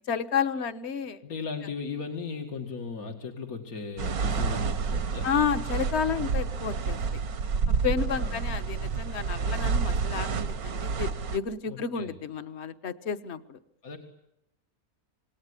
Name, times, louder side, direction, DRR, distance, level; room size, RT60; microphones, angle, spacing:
voice 1, 0.1-1.2 5.2-7.2 7.7-13.6, left 7 dB, 50° left, 10 dB, 1.5 m, -31 dB
voice 2, 1.2-5.3 8.1-8.4 11.7-12.1 13.8-14.0, left 5 dB, 75° left, 2 dB, 2.7 m, -37 dB
sound 1, 4.0-11.4, right 5 dB, 75° right, 1.7 m, -29 dB
27.5 x 20.0 x 9.8 m, 0.83 s
omnidirectional pair, 1.5 m